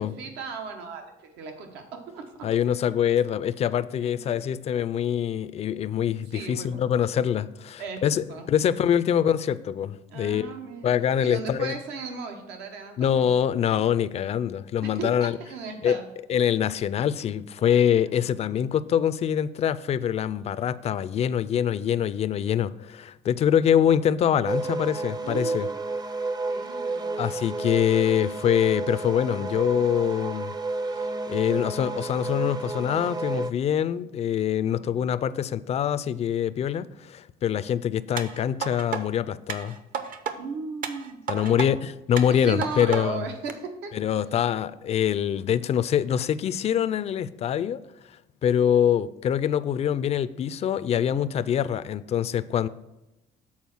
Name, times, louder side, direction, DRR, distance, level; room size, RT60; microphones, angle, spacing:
voice 1, 0.0-2.5 4.0-4.4 6.3-6.8 7.8-8.0 8.3-8.5 10.1-13.3 14.8-16.1 17.6-18.3 25.2-25.8 26.5-27.3 34.7-35.2 40.4-41.8 42.1-43.9 50.9-51.4, right 4 dB, 85° right, 1.2 m, -37 dB
voice 2, 2.4-10.5 10.8-11.8 13.0-15.3 15.8-16.0 16.3-25.7 27.2-30.5 31.3-39.8 41.3-43.3 43.9-47.8 48.4-52.7, left 9 dB, 40° left, 0.3 m, -24 dB
sound 1, 24.5-33.5, right 3 dB, 25° right, 0.5 m, -31 dB
sound 2, 38.2-39.0 39.5-40.4 40.8-41.7 42.2-43.0 43.5-43.6, right 7 dB, 55° right, 0.7 m, -32 dB
7.2 x 4.2 x 6.0 m
cardioid pair, 110°, 17 cm